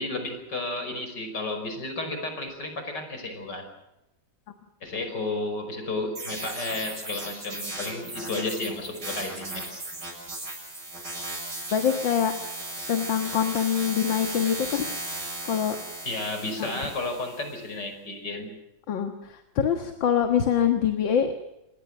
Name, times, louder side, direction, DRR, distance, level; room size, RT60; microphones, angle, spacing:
voice 1, 0.0-3.7 4.8-9.7 16.0-18.5, left 2 dB, 60° left, 6 dB, 6.0 m, -32 dB
sound 1, 6.2-17.6, right 2 dB, 60° right, 7.9 m, -36 dB
voice 2, 11.7-12.3 12.9-14.9 15.5-15.8 16.6-16.7 18.9-21.3, left 8 dB, 80° left, 6 dB, 2.3 m, -24 dB
27.0 x 21.0 x 6.3 m, 0.91 s
omnidirectional pair, 2.0 m